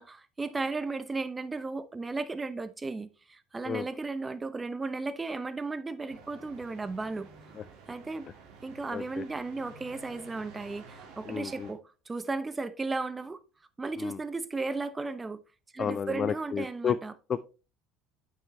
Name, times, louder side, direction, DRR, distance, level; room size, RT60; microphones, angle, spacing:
voice 1, 0.0-7.3 7.9-8.3 8.6-13.4 13.8-15.4 15.7-17.1, right 3 dB, 20° right, 0.8 m, -35 dB
sound 1, 6.1-11.7, right 5 dB, 70° right, 1.9 m, -51 dB
voice 2, 8.9-9.2 11.3-11.7 14.0-14.2 15.8-17.0 17.3-17.4, left 7 dB, 40° left, 0.4 m, -31 dB
9.0 x 5.8 x 3.1 m
hypercardioid pair, 70°, 0 cm